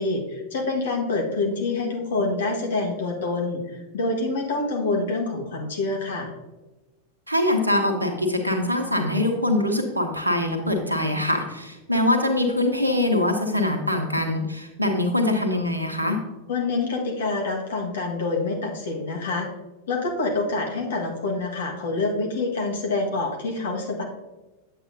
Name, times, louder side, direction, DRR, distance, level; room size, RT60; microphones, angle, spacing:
voice 1, 0.0-6.3 16.5-19.5 19.9-24.0, left 3 dB, 60° left, 1 dB, 1.5 m, -26 dB
voice 2, 7.3-16.2, left 1 dB, 85° right, 4 dB, 1.1 m, -23 dB
9.0 x 8.0 x 2.7 m, 1.1 s
figure-of-eight pair, 90°, 0 cm